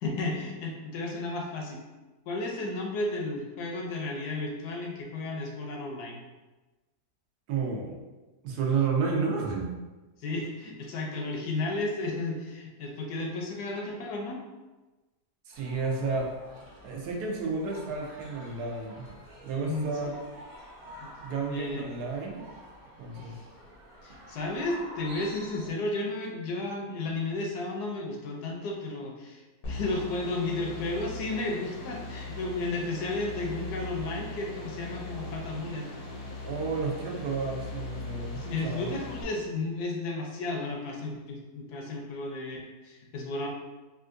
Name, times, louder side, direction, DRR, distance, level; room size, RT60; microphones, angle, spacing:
voice 1, 0.0-1.8 2.3-6.2 10.2-14.4 19.6-20.2 21.0-21.1 21.5-21.8 23.2-23.4 24.0-35.9 38.3-43.5, left 2 dB, 80° left, 0 dB, 1.2 m, -33 dB
voice 2, 7.5-8.0 8.4-9.7 15.5-16.3 16.8-19.1 19.4-20.2 21.2-22.4 23.0-23.4 36.4-38.9, right 4 dB, 80° right, -1 dB, 1.2 m, -31 dB
sound 1, 15.5-25.7, equal, 50° right, 0.6 m, -48 dB
sound 2, 29.6-39.2, left 2 dB, 55° left, 0.6 m, -39 dB
3.6 x 2.4 x 2.5 m, 1.2 s
omnidirectional pair, 1.7 m